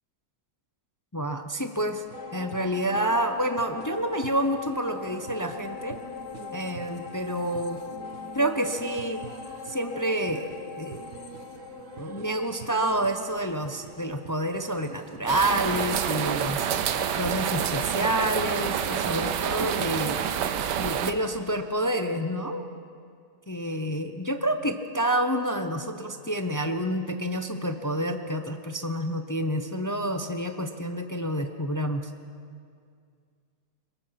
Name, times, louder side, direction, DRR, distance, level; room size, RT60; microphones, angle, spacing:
voice 1, 1.1-2.0 2.3-6.0 6.5-7.8 8.3-9.2 9.6-11.0 12.0-16.7 17.2-20.2 20.8-22.7 23.5-32.1, right 1 dB, 25° left, 7 dB, 0.4 m, -28 dB
sound 1, 2.0-15.6, right 8 dB, 55° right, 1.2 m, -46 dB
sound 2, 2.1-15.8 16.2-16.3, left 7 dB, 75° left, 1.9 m, -42 dB
sound 3, 15.3-21.1, right 8 dB, 90° right, 1.5 m, -28 dB
22.0 x 21.5 x 5.8 m, 2.2 s
omnidirectional pair, 1.8 m